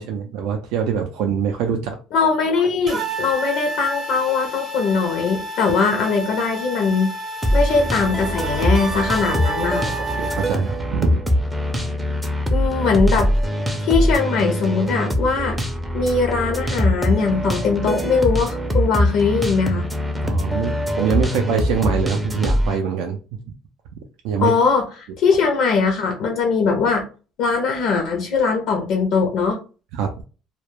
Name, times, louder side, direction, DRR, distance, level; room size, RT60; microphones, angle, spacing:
voice 1, 0.0-2.0 8.9-9.0 10.2-11.2 20.2-23.2 24.2-24.5 29.9-30.2, right 6 dB, 90° right, 3 dB, 0.3 m, -24 dB
voice 2, 2.1-7.1 7.5-9.9 12.5-13.3 13.8-15.6 15.9-19.9 24.4-27.1 27.4-29.6, left 4 dB, 70° left, 3 dB, 0.5 m, -20 dB
sound 1, 2.9-10.5, right 1 dB, 40° right, 0.7 m, -30 dB
sound 2, 7.4-22.8, equal, 5° right, 0.4 m, -22 dB
2.2 x 2.0 x 3.0 m, 0.35 s
cardioid pair, 140°, 0 cm